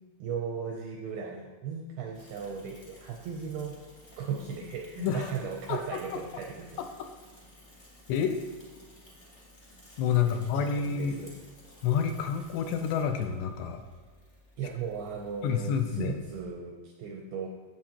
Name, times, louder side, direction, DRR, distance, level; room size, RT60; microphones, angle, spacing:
voice 1, 0.2-3.8 4.2-6.8 10.3-11.3 14.6-17.5, right 6 dB, 85° right, 1 dB, 2.2 m, -37 dB
Bicycle / Mechanisms, 2.1-16.4, left 1 dB, 25° left, 1.2 m, -55 dB
voice 2, 5.0-5.3 5.7-6.2 6.8-7.1 8.1-8.4 10.0-11.2 11.8-13.8 15.4-16.2, left 7 dB, 80° left, 6 dB, 2.6 m, -29 dB
9.3 x 8.4 x 2.9 m, 1.4 s
omnidirectional pair, 5.1 m